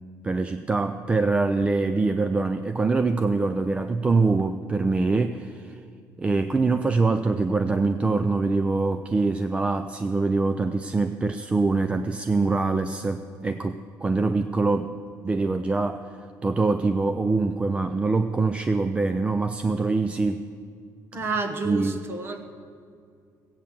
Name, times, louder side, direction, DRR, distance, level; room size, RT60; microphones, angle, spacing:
voice 1, 0.2-5.8 6.2-15.0 15.2-16.1 16.4-20.5 21.6-22.1, right 3 dB, 15° right, 9 dB, 0.4 m, -24 dB
voice 2, 21.1-22.4, right 3 dB, 35° right, 7 dB, 1.2 m, -30 dB
15.5 x 8.8 x 7.4 m, 2.3 s
cardioid pair, 150°, 7 cm